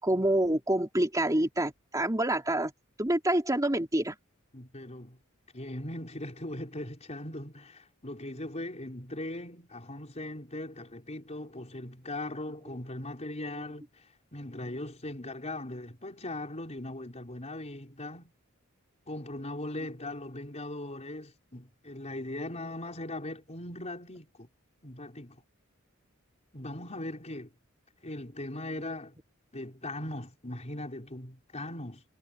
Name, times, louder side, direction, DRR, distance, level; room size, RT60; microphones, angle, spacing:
voice 1, 0.0-2.7 3.0-4.1, right 1 dB, 15° right, 3.1 m, -27 dB
voice 2, 4.5-5.2 5.5-18.3 19.1-24.5 24.8-25.4 26.5-27.5 28.0-29.2 29.5-32.0, left 1 dB, 35° left, 4.4 m, -39 dB
head